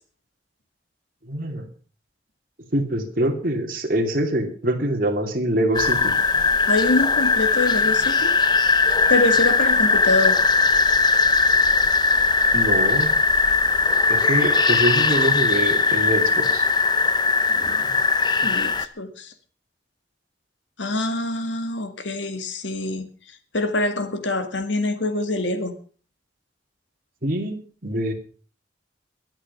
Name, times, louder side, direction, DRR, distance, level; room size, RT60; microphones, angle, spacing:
voice 1, 1.2-1.7 2.7-6.2 12.5-13.1 14.1-16.7 27.2-28.1, right 1 dB, 50° right, 2 dB, 2.8 m, -24 dB
sound 1, 5.7-18.9, left 4 dB, 25° left, 0.8 m, -19 dB
voice 2, 6.7-8.4 9.1-10.4 18.4-19.3 20.8-23.1 23.5-25.7, left 2 dB, 90° left, 9 dB, 2.0 m, -25 dB
22.0 x 8.2 x 5.5 m, 0.40 s
head